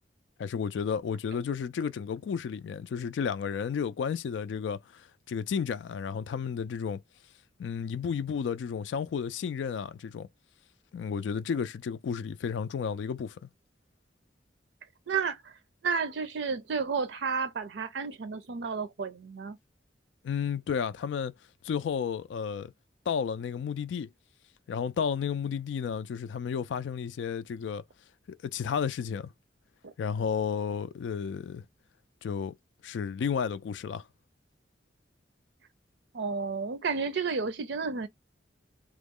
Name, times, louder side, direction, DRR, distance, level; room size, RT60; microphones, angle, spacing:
voice 1, 0.4-7.0 7.6-10.3 10.9-13.5 20.2-21.3 21.6-22.7 23.1-24.1 24.7-27.8 28.3-29.3 30.0-31.6 32.2-32.6 32.8-34.0, left 6 dB, 75° left, 0.3 m, -32 dB
voice 2, 15.1-15.5 15.8-19.6 29.8-29.9 36.1-38.1, right 5 dB, 70° right, 0.5 m, -31 dB
3.0 x 2.0 x 3.6 m
head